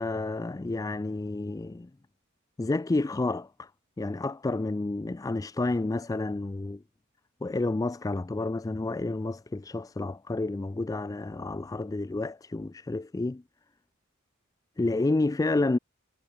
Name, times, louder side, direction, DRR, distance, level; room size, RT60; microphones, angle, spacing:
voice 1, 0.0-1.9 2.6-3.7 4.0-6.8 7.4-13.4 14.8-15.8, left 2 dB, 15° left, 0.3 m, -30 dB
head